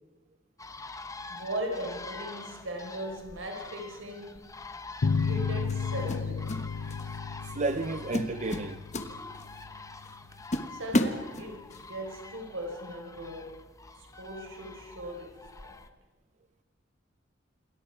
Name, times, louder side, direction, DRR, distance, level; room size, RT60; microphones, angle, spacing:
sound 1, 0.6-15.9, left 3 dB, 15° left, 1.0 m, -46 dB
voice 1, 1.3-4.4 5.2-6.5 10.7-13.5 14.0-15.3 15.6-15.8, right 1 dB, 75° right, 4.9 m, -38 dB
sound 2, 4.4-4.6 5.7-6.6 6.9-7.2 7.7-7.8 8.1-9.6 10.1-10.2 10.5-11.8, left 1 dB, 35° left, 1.3 m, -31 dB
sound 3, 5.0-10.1, left 5 dB, 65° left, 0.6 m, -33 dB
voice 2, 7.4-8.8, right 3 dB, 35° right, 0.6 m, -32 dB
27.5 x 21.5 x 4.8 m
head